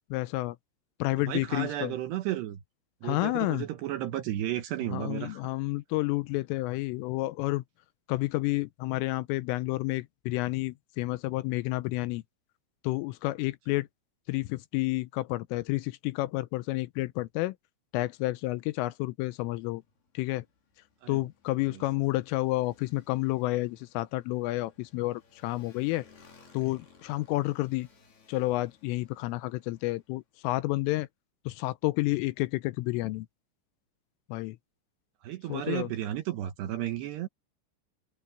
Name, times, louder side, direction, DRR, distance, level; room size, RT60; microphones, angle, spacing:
voice 1, 0.1-0.6 1.0-2.0 3.0-3.6 4.9-7.6 8.1-12.2 12.8-13.9 14.3-17.5 17.9-19.8 20.1-20.4 21.1-26.1 26.5-27.9 28.3-31.1 31.5-33.3 34.3-34.6 35.5-35.9, left 19 dB, 85° left, 3.2 m, -30 dB
voice 2, 1.3-2.6 3.0-5.4 21.0-21.2 21.7-21.8 35.2-37.3, right 13 dB, 70° right, 2.8 m, -33 dB
Motorcycle, 19.5-30.2, left 5 dB, 50° left, 6.9 m, -61 dB
omnidirectional pair, 6.0 m